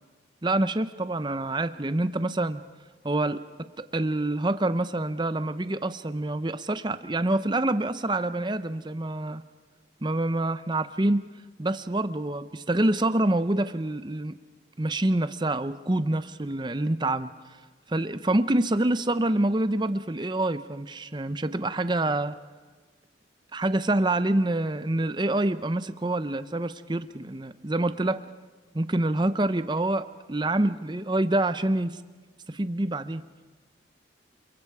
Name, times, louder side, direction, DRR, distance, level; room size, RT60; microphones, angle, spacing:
voice 1, 0.4-2.6 3.0-3.4 3.8-9.4 10.0-11.3 11.6-14.4 14.8-17.3 17.9-22.4 23.5-28.2 28.7-31.9 32.5-33.2, right 1 dB, 25° right, 12 dB, 0.7 m, -26 dB
28.5 x 22.5 x 4.8 m, 1.3 s
head